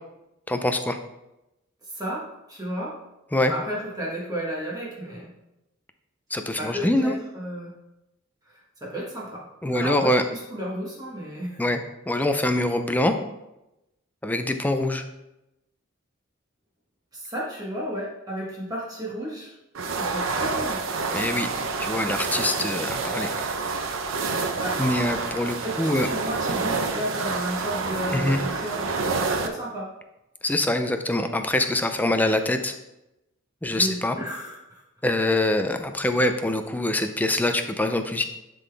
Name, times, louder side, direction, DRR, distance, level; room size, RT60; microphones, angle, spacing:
voice 1, 0.5-1.0 3.3-3.5 6.3-7.1 9.6-10.2 11.6-11.8 12.1-13.1 14.2-15.0 21.1-21.5 21.8-23.5 24.8-26.1 28.1-28.4 30.4-32.7 33.6-34.2 35.0-38.2, left 1 dB, 10° left, 7 dB, 0.4 m, -24 dB
voice 2, 1.9-2.9 3.5-5.3 6.5-7.7 8.4-11.6 17.1-19.5 20.0-20.9 24.6-24.8 25.6-28.9 29.4-29.9 33.7-34.8, equal, 20° right, -5 dB, 1.3 m, -33 dB
sound 1, 19.7-29.5, right 4 dB, 80° right, 0.7 m, -28 dB
11.0 x 3.8 x 3.4 m, 0.93 s
head